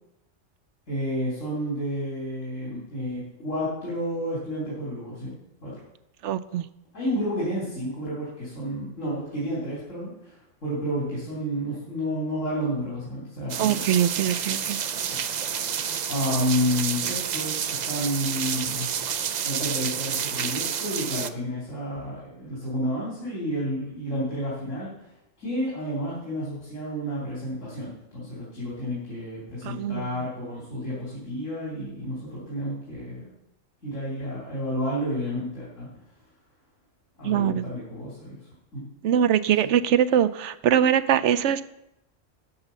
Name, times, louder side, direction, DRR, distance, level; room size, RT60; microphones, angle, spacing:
voice 1, 0.9-5.3 5.6-5.8 6.9-13.9 15.1-15.2 16.1-18.9 19.4-24.9 25.4-33.3 33.8-35.9 37.2-38.4 38.7-38.8 39.6-39.7, equal, 85° left, -6 dB, 3.4 m, -30 dB
voice 2, 6.2-6.7 13.6-14.8 29.6-30.1 37.2-37.7 39.0-41.6, right 9 dB, 75° right, 14 dB, 0.9 m, -22 dB
sound 1, 13.5-21.3, right 8 dB, 55° right, 0.5 m, -29 dB
12.5 x 7.0 x 5.5 m, 0.89 s
omnidirectional pair, 1.3 m